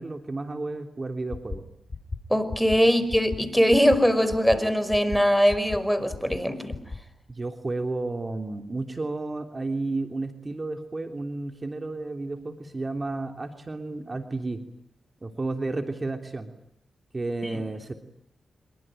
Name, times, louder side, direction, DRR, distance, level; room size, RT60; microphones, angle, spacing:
voice 1, 0.0-1.6 7.3-14.6 15.2-16.5 17.1-17.9, right 2 dB, 35° right, 6 dB, 3.3 m, -32 dB
sound 1, 1.3-1.6 1.9-2.2 2.5-2.8 3.1-3.4 3.7-4.0 4.3-4.6 4.9-5.2 5.5-5.8 6.1-6.4 6.7-7.0, left 3 dB, 40° left, 3.7 m, -34 dB
voice 2, 2.3-6.8 17.5-17.6, equal, 5° left, 14 dB, 5.3 m, -21 dB
27.0 x 23.5 x 9.2 m, 0.75 s
supercardioid pair, 45°, 0 cm